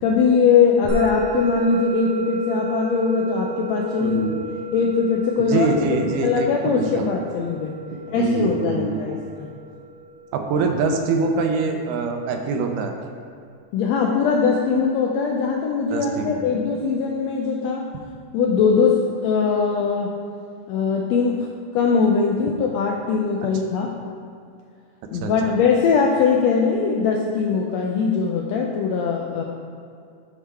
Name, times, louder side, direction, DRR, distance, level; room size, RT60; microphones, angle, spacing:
voice 1, 0.0-4.2 4.7-5.7 6.2-7.7 8.1-9.5 13.7-17.8 18.3-20.1 20.7-21.5 21.7-23.9 25.1-29.4, left 5 dB, 85° left, 0 dB, 1.5 m, -21 dB
Musical instrument, 0.9-11.5, right 2 dB, 55° right, 2.1 m, -32 dB
voice 2, 4.0-4.5 5.4-7.1 7.9-9.2 10.3-12.9 15.9-16.6 25.2-25.5, right 4 dB, 90° right, 4 dB, 2.2 m, -24 dB
10.0 x 4.7 x 3.4 m, 2.4 s
omnidirectional pair, 3.5 m